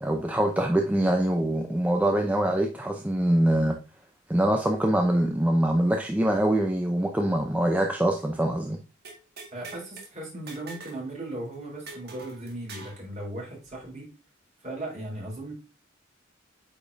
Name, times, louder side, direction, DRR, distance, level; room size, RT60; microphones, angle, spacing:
voice 1, 0.0-3.8 4.3-8.8, right 1 dB, 10° right, 0.6 m, -24 dB
sound 1, 9.0-10.1 10.5-11.0 11.3-11.4 11.9-13.0, right 3 dB, 55° right, 1.8 m, -43 dB
voice 2, 9.5-14.1 14.6-15.5, right 1 dB, 40° right, 3.7 m, -37 dB
8.4 x 5.1 x 2.6 m
head